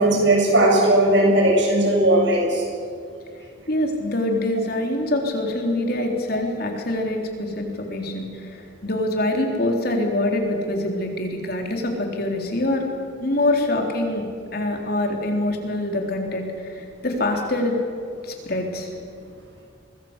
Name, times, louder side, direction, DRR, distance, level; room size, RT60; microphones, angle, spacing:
voice 1, 0.0-2.6, right 1 dB, 65° right, 0 dB, 7.5 m, -17 dB
voice 2, 3.7-12.8 13.2-14.3 14.5-17.8 18.2-18.9, left 1 dB, 50° left, 2 dB, 3.8 m, -25 dB
24.0 x 20.5 x 8.2 m, 2.3 s
head